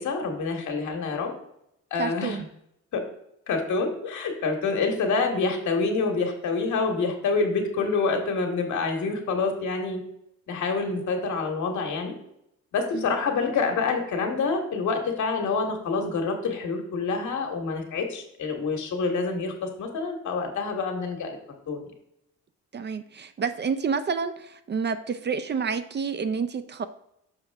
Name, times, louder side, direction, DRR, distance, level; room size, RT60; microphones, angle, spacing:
voice 1, 0.0-1.3 1.9-2.4 3.5-10.0 10.5-12.1 12.7-21.4 21.7-21.8, left 4 dB, 70° left, 3 dB, 1.6 m, -27 dB
voice 2, 2.0-2.4 12.9-13.1 22.7-26.9, right 6 dB, 35° right, 11 dB, 0.5 m, -29 dB
6.6 x 5.5 x 3.5 m, 0.78 s
cardioid pair, 90°, 30 cm